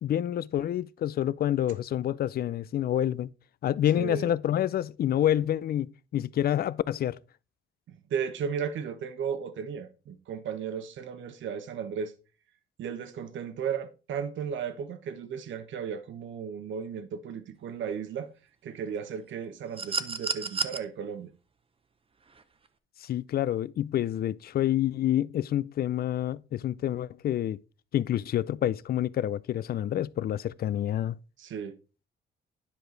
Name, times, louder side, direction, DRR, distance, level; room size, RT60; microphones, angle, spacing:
voice 1, 0.0-3.3 3.6-7.2 23.0-27.6 27.9-31.2, left 11 dB, 50° left, 0.4 m, -28 dB
voice 2, 3.9-4.3 7.9-12.1 12.8-18.3 18.6-21.3 31.4-31.7, right 7 dB, 70° right, 1.1 m, -35 dB
sound 1, 19.8-20.8 22.3-22.4, right 5 dB, 30° right, 0.8 m, -31 dB
10.0 x 4.9 x 3.9 m
cardioid pair, 90°, 20 cm